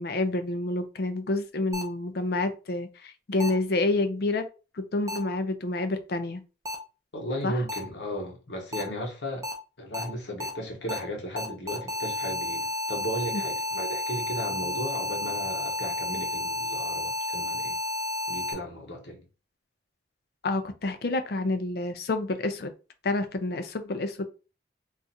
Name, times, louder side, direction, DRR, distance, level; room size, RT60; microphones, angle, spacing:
voice 1, 0.0-4.5 4.8-6.4 7.4-7.6 20.4-22.7 23.0-24.2, left 2 dB, 60° left, 0.5 m, -28 dB
sound 1, 1.7-1.8 3.4-3.5 5.1-5.2 6.6-6.7 7.7-7.8 8.7-8.8 9.4-9.5 9.9-10.0 10.4-10.5 10.9-11.0 11.4-18.5, left 2 dB, 20° right, 0.5 m, -31 dB
voice 2, 7.1-9.4 9.8-17.8 18.3-19.2, equal, 80° left, 1.1 m, -35 dB
2.5 x 2.4 x 4.1 m
head